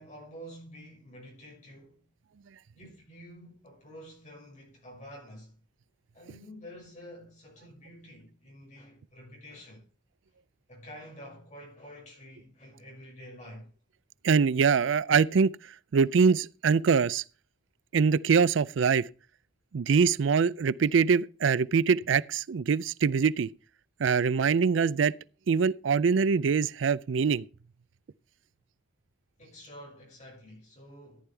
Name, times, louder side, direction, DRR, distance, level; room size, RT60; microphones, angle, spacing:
voice 1, 0.0-2.0 2.7-5.6 6.1-9.9 10.7-13.7 29.4-31.2, equal, 40° left, 6.1 m, -48 dB
voice 2, 14.2-15.6 15.9-17.2 17.9-19.1 19.7-23.5 24.0-25.1 25.5-27.4, right 5 dB, 85° right, 0.4 m, -24 dB
14.5 x 9.8 x 3.4 m
head